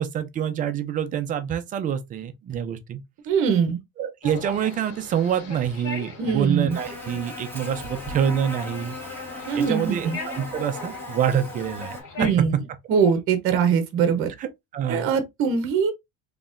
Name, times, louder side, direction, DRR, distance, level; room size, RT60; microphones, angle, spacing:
voice 1, 0.0-3.0 4.0-9.0 9.5-12.3 14.4-15.1, right 9 dB, 25° right, 0.4 m, -26 dB
voice 2, 3.3-3.8 6.2-6.8 9.5-10.2 12.2-12.5 12.9-14.3 14.9-15.9, right 6 dB, 40° right, 0.8 m, -22 dB
sound 1, 4.2-12.3, left 3 dB, 45° left, 2.0 m, -40 dB
Buzz, 6.7-12.0, left 2 dB, 5° left, 1.1 m, -37 dB
3.9 x 2.9 x 2.5 m
cardioid pair, 170°, 33 cm